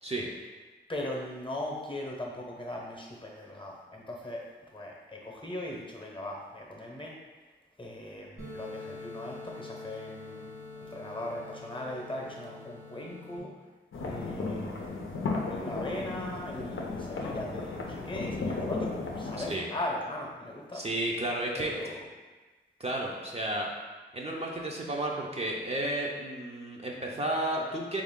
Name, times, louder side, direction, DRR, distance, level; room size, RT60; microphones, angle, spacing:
voice 1, 0.9-7.2 7.8-10.5 10.8-13.5 13.9-20.8 21.6-22.0, left 1 dB, 25° left, -1 dB, 0.8 m, -39 dB
sound 1, 8.4-13.4, left 3 dB, 80° right, 1.3 m, -45 dB
sound 2, 13.9-19.5, left 3 dB, 75° left, 0.6 m, -35 dB
voice 2, 19.4-19.7 20.7-21.7 22.8-23.7 24.1-28.0, right 1 dB, 30° right, -2 dB, 0.5 m, -32 dB
3.4 x 2.5 x 3.6 m, 1.3 s
cardioid pair, 45°, 21 cm